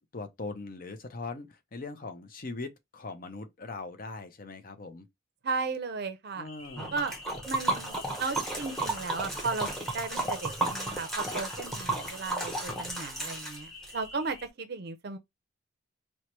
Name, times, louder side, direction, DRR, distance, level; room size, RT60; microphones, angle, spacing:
voice 1, 0.0-5.1 6.4-6.9, left 3 dB, 45° left, 0.6 m, -40 dB
voice 2, 5.4-6.5 6.9-7.1 7.5-15.2, right 4 dB, 50° right, 0.5 m, -35 dB
sound 1, 6.4-14.5, left 2 dB, 75° left, 0.9 m, -48 dB
Liquid, 6.8-13.9, right 2 dB, ahead, 0.8 m, -33 dB
4.5 x 2.1 x 2.9 m
head